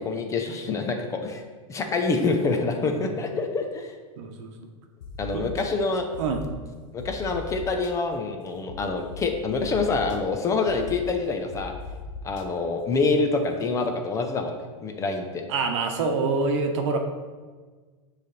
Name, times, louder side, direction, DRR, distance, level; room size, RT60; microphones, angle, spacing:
voice 1, 0.0-1.4 1.7-4.0 5.2-6.1 6.9-11.7 12.2-15.4, left 3 dB, 20° left, 4 dB, 0.5 m, -26 dB
voice 2, 4.2-4.5 5.3-5.5 6.2-6.4 15.5-17.0, right 4 dB, 60° right, 5 dB, 1.0 m, -26 dB
sound 1, 5.0-5.6 6.1-6.5 7.0-7.9 8.7-8.8 9.1-9.2 9.5-10.2 10.7-11.0 11.5-12.4, left 3 dB, 75° left, 0.8 m, -38 dB
9.1 x 3.3 x 4.0 m, 1.4 s
supercardioid pair, 145°, 17 cm